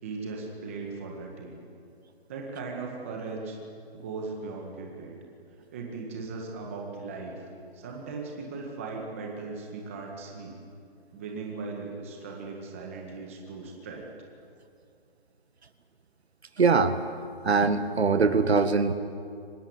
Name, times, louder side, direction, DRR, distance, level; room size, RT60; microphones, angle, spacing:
voice 1, 0.0-1.7 2.3-3.6 3.9-5.2 5.7-7.5 7.7-10.5 11.1-14.1, right 4 dB, 15° right, 0 dB, 1.9 m, -38 dB
voice 2, 16.6-17.0 17.4-18.9, right 4 dB, 80° right, 10 dB, 1.9 m, -22 dB
24.0 x 19.5 x 9.7 m, 2.4 s
hypercardioid pair, 180°, 32 cm